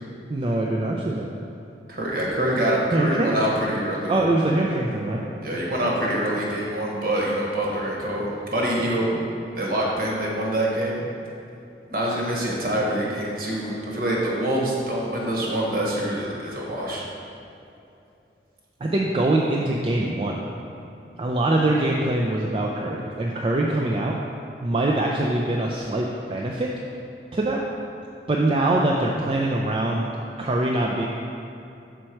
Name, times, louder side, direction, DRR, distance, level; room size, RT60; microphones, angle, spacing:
voice 1, 0.3-1.3 2.9-3.4 4.1-5.2 18.8-20.4 21.2-24.2 24.6-26.7 27.3-27.7 28.3-30.1 30.4-31.1, right 2 dB, 30° right, -2 dB, 0.3 m, -23 dB
voice 2, 1.9-4.2 5.4-9.1 9.6-11.0 11.9-17.0, right 1 dB, 55° right, -3 dB, 1.2 m, -25 dB
6.4 x 4.4 x 4.4 m, 2.7 s
head